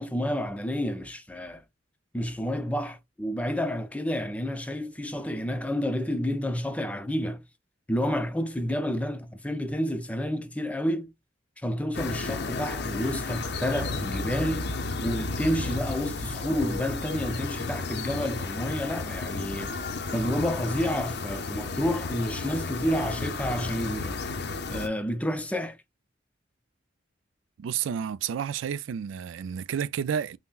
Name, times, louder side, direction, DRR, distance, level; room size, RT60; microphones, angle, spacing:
voice 1, 0.0-1.6 2.1-7.4 7.9-11.1 11.6-14.7 15.0-19.8 20.1-24.2 24.7-25.8, equal, 5° left, 0.4 m, -30 dB
sound 1, 11.9-24.9, left 3 dB, 55° left, 0.5 m, -33 dB
voice 2, 27.6-30.4, right 8 dB, 75° right, 0.3 m, -30 dB
5.6 x 2.1 x 2.3 m
head